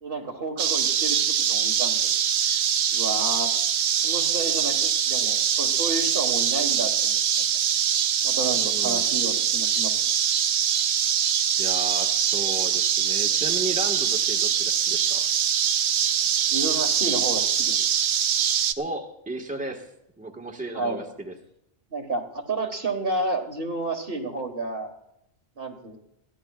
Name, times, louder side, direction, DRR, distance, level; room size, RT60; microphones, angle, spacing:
voice 1, 0.0-2.1 2.4-2.6 2.9-3.5 4.0-7.5 8.2-10.0 16.4-18.1 20.7-21.0 21.9-24.9 25.6-26.0, right 2 dB, 50° right, 2 dB, 1.7 m, -31 dB
sound 1, 0.6-18.7, right 8 dB, 70° right, 1.0 m, -23 dB
voice 2, 8.5-9.0 11.6-15.2 18.8-19.9 20.2-21.3, right 2 dB, 5° right, 1 dB, 1.5 m, -34 dB
22.5 x 15.5 x 2.4 m, 0.80 s
omnidirectional pair, 1.2 m